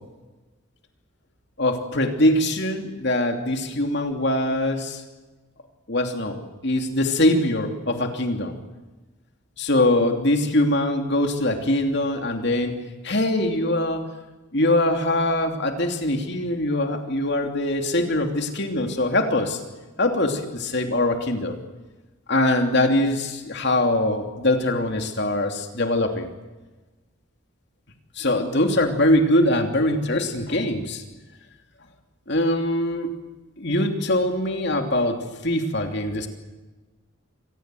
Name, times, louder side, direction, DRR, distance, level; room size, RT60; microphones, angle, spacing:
voice 1, 1.6-5.0 5.9-8.6 9.6-12.8 13.0-14.1 14.5-19.6 20.0-21.6 22.3-26.3 28.2-31.0 32.3-33.1 33.6-36.3, left 1 dB, 55° left, 4 dB, 2.9 m, -22 dB
25.5 x 19.0 x 7.8 m, 1.2 s
head